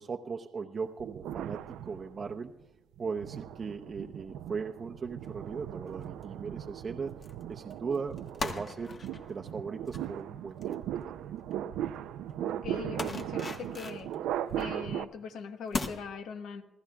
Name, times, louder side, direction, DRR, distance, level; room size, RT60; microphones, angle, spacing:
voice 1, 0.0-2.5 3.0-7.1 7.5-8.9 9.3-11.2, right 5 dB, 40° right, 2 dB, 0.7 m, -38 dB
sound 1, 1.0-2.4 3.0-15.0, right 11 dB, 90° right, 0.5 m, -38 dB
sound 2, 5.2-5.5 5.9-6.2 7.2-7.4 7.7-11.6 11.9-12.0 12.3-12.5 13.0-14.8 15.2-15.3 15.7-15.9, left 3 dB, 40° left, 1.2 m, -40 dB
voice 2, 12.3-14.1 14.6-16.6, left 6 dB, 80° left, 7 dB, 1.1 m, -41 dB
27.5 x 15.0 x 2.3 m, 0.97 s
cardioid pair, 90°, 0 cm